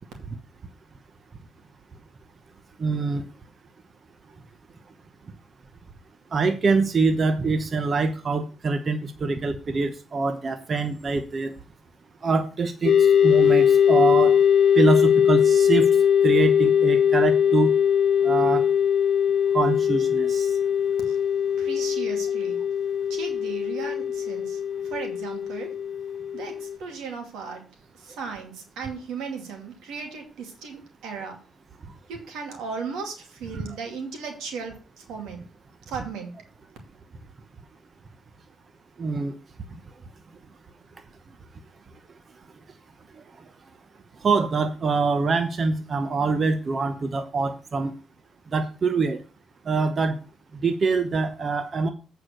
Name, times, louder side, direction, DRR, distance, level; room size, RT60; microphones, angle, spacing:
voice 1, 2.8-3.2 6.3-11.5 12.2-14.3 14.8-15.9 16.2-17.7 18.2-18.6 19.5-20.6 28.2-28.3 33.5-33.8 39.0-39.3 44.2-47.9 48.5-49.2 49.7-50.2 50.6-51.9, right 4 dB, 40° right, 8 dB, 0.9 m, -24 dB
sound 1, 12.9-26.8, left 8 dB, 60° left, 1.0 m, -21 dB
voice 2, 21.6-22.6 23.1-25.8 26.3-27.7 27.9-31.4 32.1-35.4 35.9-36.3, right 5 dB, 90° right, 3 dB, 2.4 m, -36 dB
8.3 x 4.7 x 6.4 m, 0.35 s
cardioid pair, 90°, 0 cm